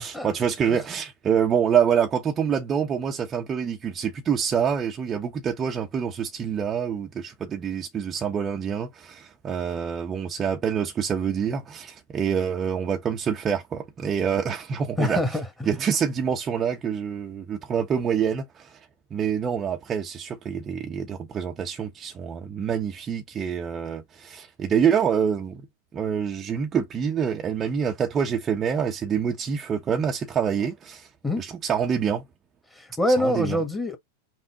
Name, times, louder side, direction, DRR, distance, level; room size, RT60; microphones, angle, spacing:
voice 1, 0.0-15.2 15.7-18.8 19.1-25.6 25.9-31.1 31.4-32.2 33.2-33.6, right 7 dB, 25° right, 0.9 m, -26 dB
voice 2, 15.0-15.8 31.2-31.4 32.7-34.0, left 1 dB, 10° left, 1.7 m, -25 dB
5.9 x 2.3 x 3.7 m
figure-of-eight pair, 90°, 0 cm